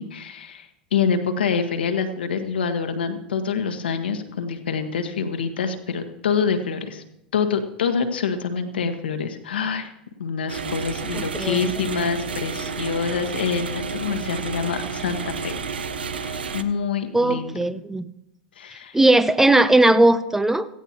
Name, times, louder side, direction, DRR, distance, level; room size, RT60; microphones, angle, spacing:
voice 1, 0.0-7.0 7.3-9.9 10.2-15.5 16.1-17.6 18.6-19.0, left 6 dB, 80° left, 6 dB, 1.5 m, -26 dB
sound 1, 10.5-16.6, right 5 dB, 80° right, 0.9 m, -31 dB
voice 2, 11.1-11.8 17.1-18.1 18.9-20.7, right 2 dB, 5° right, 13 dB, 0.7 m, -18 dB
17.5 x 15.5 x 3.0 m, 0.83 s
hypercardioid pair, 90°, 5 cm